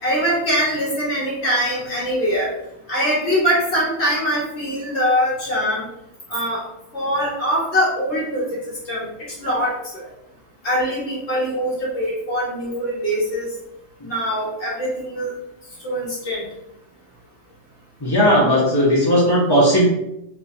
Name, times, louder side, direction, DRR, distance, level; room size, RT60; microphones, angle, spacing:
voice 1, 0.0-2.5 2.9-5.8 6.3-6.6 6.9-8.6 8.8-9.1 9.4-9.8 10.6-13.5 14.0-15.3 15.8-16.4, equal, 55° left, -7 dB, 1.4 m, -22 dB
voice 2, 18.0-19.8, equal, 30° left, -7 dB, 0.4 m, -16 dB
4.4 x 2.3 x 2.6 m, 0.84 s
omnidirectional pair, 1.5 m